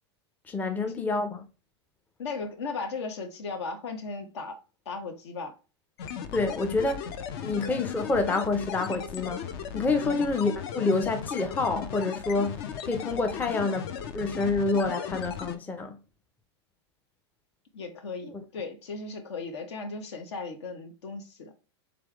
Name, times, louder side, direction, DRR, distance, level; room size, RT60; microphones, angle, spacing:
voice 1, 0.5-1.4 6.3-7.1 7.4-9.4 9.7-16.0 18.2-18.3, left 3 dB, 10° left, 0.5 m, -28 dB
voice 2, 2.2-4.6 4.8-5.5 10.0-10.3 17.7-21.5, left 4 dB, 75° left, 1.3 m, -36 dB
sound 1, 6.0-15.6, left 8 dB, 60° left, 0.7 m, -36 dB
3.8 x 3.4 x 3.4 m
hypercardioid pair, 120°, 14 cm